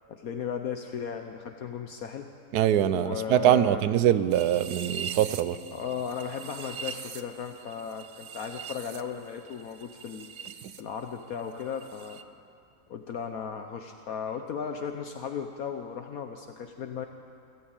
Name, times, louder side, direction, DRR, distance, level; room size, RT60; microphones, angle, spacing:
voice 1, 0.1-2.3 2.9-3.8 5.7-10.3 10.8-12.2 12.9-17.1, left 7 dB, 65° left, 5 dB, 1.3 m, -36 dB
voice 2, 2.5-5.6, right 11 dB, 75° right, 14 dB, 1.2 m, -23 dB
sound 1, 4.3-10.8 11.1-12.2, right 7 dB, 55° right, 0.9 m, -42 dB
27.5 x 13.0 x 8.9 m, 2.5 s
omnidirectional pair, 1.7 m